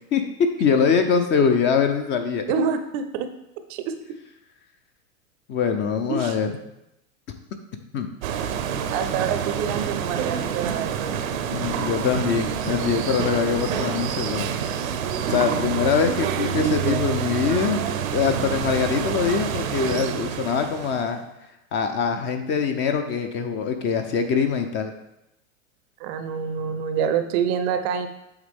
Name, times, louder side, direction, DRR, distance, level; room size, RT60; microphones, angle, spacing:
voice 1, 0.6-2.4 5.5-6.5 7.9-8.1 11.5-14.9 15.3-17.8 18.1-21.2 21.7-24.9, left 6 dB, 30° left, 7 dB, 0.5 m, -23 dB
voice 2, 2.5-3.3 3.7-4.0 6.1-6.4 8.9-11.2 26.0-28.1, right 7 dB, 40° right, 9 dB, 0.6 m, -26 dB
sound 1, 8.2-21.1, right 8 dB, 75° right, 0.7 m, -27 dB
8.0 x 3.6 x 3.6 m, 0.85 s
hypercardioid pair, 115°, 41 cm